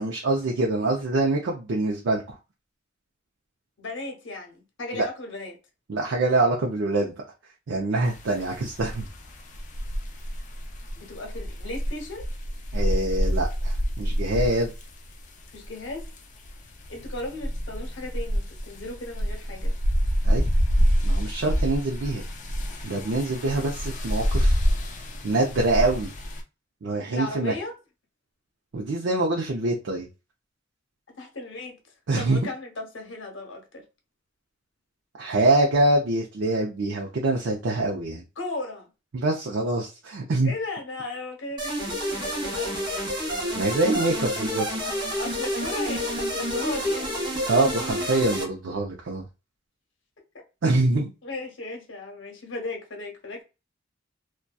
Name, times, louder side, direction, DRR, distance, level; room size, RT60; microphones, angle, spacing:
voice 1, 0.0-2.4 4.9-5.1 5.9-7.1 7.7-9.1 12.7-14.7 20.2-20.5 21.0-22.2 22.8-24.6 25.2-26.1 26.8-27.5 28.7-30.1 32.1-32.4 35.2-38.2 39.1-40.5 43.5-44.7 47.5-49.2 50.6-51.1, right 2 dB, 70° right, 0.5 m, -25 dB
voice 2, 3.8-5.6 11.0-12.3 15.5-16.1 16.9-19.7 27.1-27.7 31.2-31.8 32.2-33.8 38.4-38.9 40.4-43.2 44.8-47.2 51.2-53.4, left 2 dB, 75° left, 0.8 m, -36 dB
sound 1, 8.0-26.4, equal, 40° left, 0.4 m, -27 dB
sound 2, 41.6-48.4, equal, 25° right, 0.7 m, -29 dB
2.6 x 2.2 x 2.2 m
head